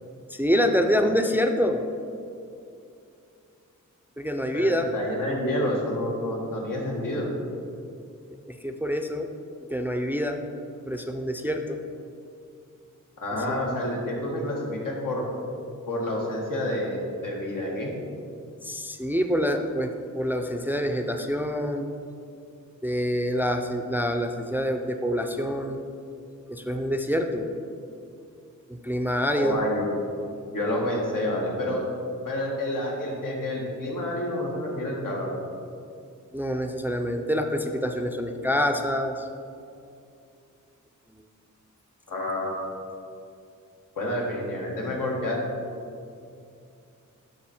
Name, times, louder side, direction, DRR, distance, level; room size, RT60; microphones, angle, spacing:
voice 1, 0.3-1.8 4.2-4.9 8.4-9.3 9.7-10.4 10.8-11.8 13.5-13.8 18.6-21.9 22.8-25.8 26.5-27.5 28.7-29.7 36.3-39.3, equal, 5° right, 5 dB, 0.4 m, -26 dB
voice 2, 4.5-7.3 13.2-15.3 15.9-17.9 29.3-29.9 30.5-31.8 32.2-35.4 42.1-42.7 44.0-45.4, left 1 dB, 90° left, -2 dB, 1.7 m, -29 dB
12.0 x 4.0 x 4.3 m, 2.5 s
wide cardioid pair, 130°, 31 cm